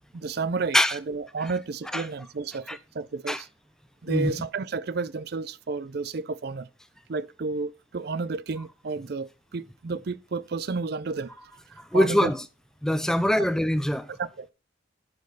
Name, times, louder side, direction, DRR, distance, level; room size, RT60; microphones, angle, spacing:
voice 1, 0.1-3.5 4.0-6.7 7.1-11.4 11.7-12.3 14.2-14.5, right 4 dB, 55° right, 0.5 m, -31 dB
voice 2, 11.9-12.4 12.8-14.1, left 1 dB, 5° left, 0.4 m, -23 dB
11.5 x 5.3 x 3.9 m
head